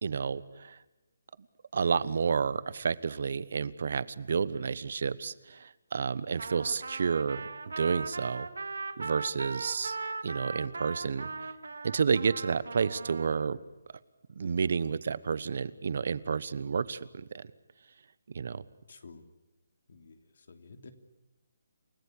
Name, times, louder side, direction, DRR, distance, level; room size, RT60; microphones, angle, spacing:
voice 1, 0.0-0.8 1.7-7.4 7.8-8.5 9.0-10.0 10.2-11.5 11.8-13.6 14.3-17.4 18.3-18.6, right 5 dB, 60° right, 18 dB, 1.2 m, -30 dB
Trumpet, 6.4-13.5, right 4 dB, 85° right, 2.2 m, -39 dB
voice 2, 18.9-19.2 19.9-20.9, left 4 dB, 60° left, 8 dB, 3.2 m, -51 dB
29.5 x 17.0 x 8.6 m, 1.0 s
hypercardioid pair, 160°, 0 cm